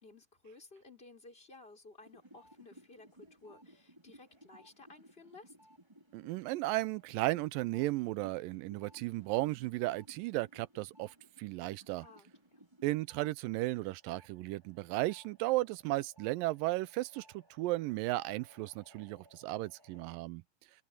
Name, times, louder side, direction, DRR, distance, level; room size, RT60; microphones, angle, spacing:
voice 1, 0.0-5.5 12.0-12.6, left 3 dB, 15° left, 5.0 m, -56 dB
sound 1, 2.0-13.3 13.7-20.0, right 1 dB, 5° right, 4.2 m, -61 dB
voice 2, 6.1-12.1 12.8-20.4, right 19 dB, 85° right, 2.3 m, -35 dB
omnidirectional pair, 3.9 m